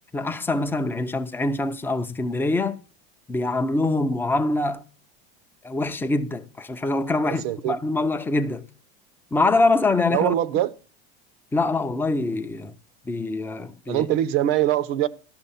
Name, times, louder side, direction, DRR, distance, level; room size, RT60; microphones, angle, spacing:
voice 1, 0.1-2.8 3.3-4.8 5.6-8.6 9.3-10.4 11.5-12.7 13.1-14.1, left 2 dB, 5° left, 0.4 m, -24 dB
voice 2, 7.4-7.8 10.1-10.7 13.9-15.1, right 13 dB, 65° right, 0.7 m, -22 dB
12.5 x 6.2 x 5.6 m
supercardioid pair, 145°, 31 cm